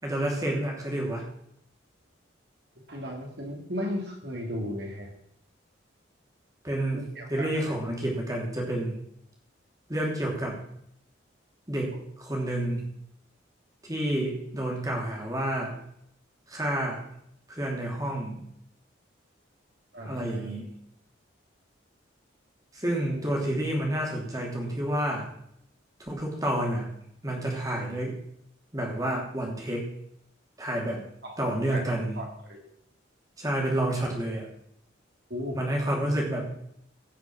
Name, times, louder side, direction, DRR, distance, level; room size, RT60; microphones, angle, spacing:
voice 1, 0.0-1.2 6.6-7.0 7.3-8.9 9.9-10.6 11.7-12.9 13.8-15.8 16.5-17.0 17.5-18.4 20.0-20.7 22.7-25.3 26.1-26.9 27.2-28.2 28.7-29.9 30.6-31.0 31.4-32.2 33.4-34.5 35.5-36.5, right 1 dB, 20° right, -1 dB, 2.9 m, -29 dB
voice 2, 2.9-5.1 6.9-7.7 19.9-20.5 23.1-23.2 31.2-32.6 35.3-35.6 36.0-36.1, equal, 60° right, 1 dB, 3.2 m, -36 dB
16.5 x 5.9 x 6.2 m, 0.72 s
head